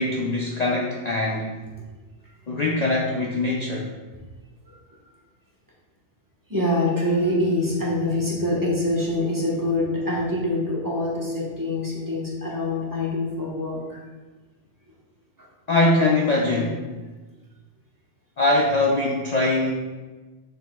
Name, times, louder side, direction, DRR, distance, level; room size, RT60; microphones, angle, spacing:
voice 1, 0.0-1.5 2.5-3.9 15.7-16.8 18.4-19.7, left 2 dB, 45° left, -2 dB, 0.6 m, -22 dB
voice 2, 6.5-14.0, left 1 dB, 15° right, -5 dB, 1.4 m, -25 dB
6.8 x 6.0 x 2.4 m, 1.3 s
omnidirectional pair, 1.2 m